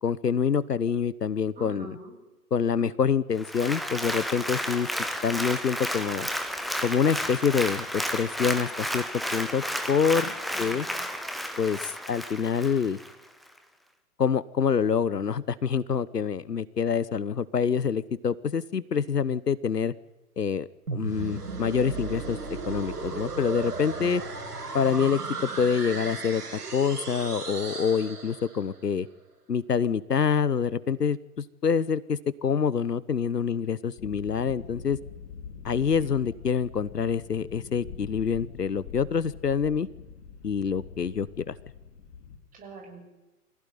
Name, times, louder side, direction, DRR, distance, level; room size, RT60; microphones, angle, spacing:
voice 1, 0.0-2.0 2.5-4.9 5.2-6.3 6.8-10.3 10.6-10.9 11.6-13.0 14.2-19.9 20.4-22.4 22.7-24.2 24.7-26.4 26.7-29.1 29.5-35.0 35.6-39.9 40.4-41.6, left 6 dB, 80° left, 19 dB, 1.1 m, -26 dB
voice 2, 1.5-2.1 10.2-11.0 23.9-24.2 42.5-43.0, right 4 dB, 15° right, 1 dB, 6.8 m, -45 dB
Applause, 3.4-13.1 13.6-13.7, equal, ahead, 0.7 m, -32 dB
sound 1, 20.9-28.8, right 4 dB, 70° right, 5.7 m, -35 dB
sound 2, 34.0-42.4, left 6 dB, 40° left, 4.4 m, -44 dB
25.5 x 16.0 x 9.5 m, 1.1 s
figure-of-eight pair, 120°, 48 cm